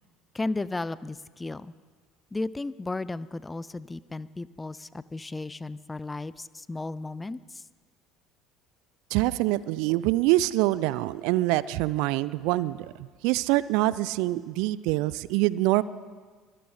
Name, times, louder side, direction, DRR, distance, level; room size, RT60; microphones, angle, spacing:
voice 1, 0.3-1.7 2.3-7.6, left 2 dB, 15° left, 18 dB, 0.5 m, -34 dB
voice 2, 9.1-15.8, right 17 dB, 60° right, 19 dB, 0.4 m, -25 dB
23.5 x 10.0 x 4.9 m, 1.5 s
figure-of-eight pair, 65°, 0 cm